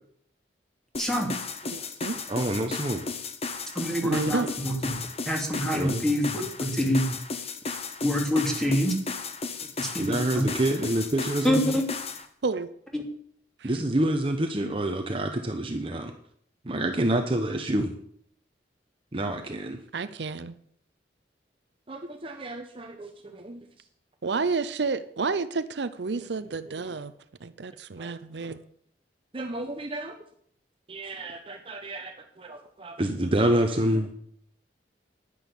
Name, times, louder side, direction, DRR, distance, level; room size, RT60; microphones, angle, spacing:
sound 1, 0.9-12.2, left 4 dB, 35° left, 1.1 m, -35 dB
voice 1, 1.0-1.3 3.7-4.9 5.3-7.1 8.0-8.9 9.8-10.4 11.4-11.8 12.9-13.0, equal, 5° left, 1 dB, 2.6 m, -26 dB
voice 2, 2.3-3.0 5.7-6.1 10.0-11.7 13.6-16.1 16.6-17.9 19.1-19.8 21.9-23.6 26.2-26.3 26.8-26.9 28.0-28.1 29.3-30.1 30.9-34.1, right 1 dB, 30° right, 5 dB, 1.0 m, -28 dB
voice 3, 4.0-4.5 12.4-12.7 13.6-13.7 19.9-20.5 24.2-27.1 27.4-28.6, right 4 dB, 70° right, 12 dB, 0.6 m, -30 dB
10.5 x 10.0 x 7.1 m, 0.64 s
head